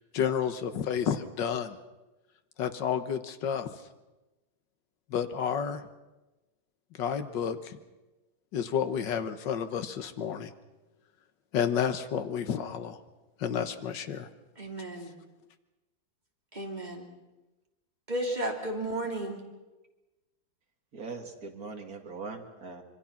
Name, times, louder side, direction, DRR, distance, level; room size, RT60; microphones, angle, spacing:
voice 1, 0.0-1.8 2.6-3.7 5.1-5.8 7.0-7.8 8.5-10.5 11.5-13.0 13.4-14.3, left 8 dB, 70° left, 10 dB, 1.8 m, -30 dB
voice 2, 14.6-15.1 16.5-17.1 18.1-19.4, right 1 dB, 20° right, 1 dB, 3.1 m, -33 dB
voice 3, 20.9-22.8, right 4 dB, 50° right, 4 dB, 2.6 m, -41 dB
25.5 x 23.0 x 5.9 m, 1.1 s
omnidirectional pair, 2.0 m